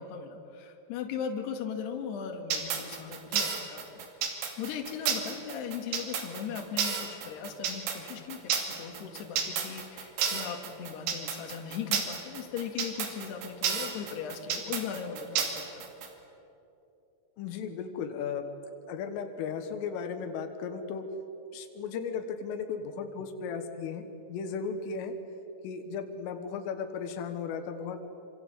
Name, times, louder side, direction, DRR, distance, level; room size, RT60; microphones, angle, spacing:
voice 1, 0.0-15.7, left 7 dB, 60° left, 4 dB, 4.0 m, -38 dB
sound 1, 2.5-16.1, right 7 dB, 85° right, 5.0 m, -31 dB
voice 2, 17.4-18.5 18.9-21.1 21.5-25.2 25.6-28.0, left 6 dB, 85° left, 6 dB, 4.0 m, -36 dB
27.5 x 26.5 x 8.3 m, 3.0 s
omnidirectional pair, 5.6 m